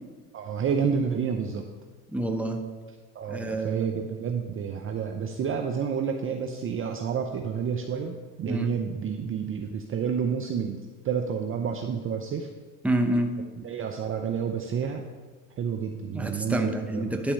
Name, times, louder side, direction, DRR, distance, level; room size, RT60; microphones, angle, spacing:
voice 1, 0.3-1.7 3.2-10.8 11.0-12.5 13.6-15.0 15.6-17.0, right 7 dB, 30° right, 4 dB, 0.6 m, -29 dB
voice 2, 2.1-2.6 3.3-4.0 8.4-8.7 12.8-13.3 16.1-17.3, right 1 dB, 5° right, 4 dB, 0.8 m, -27 dB
10.5 x 4.2 x 5.3 m, 1.4 s
hypercardioid pair, 85°, 45 cm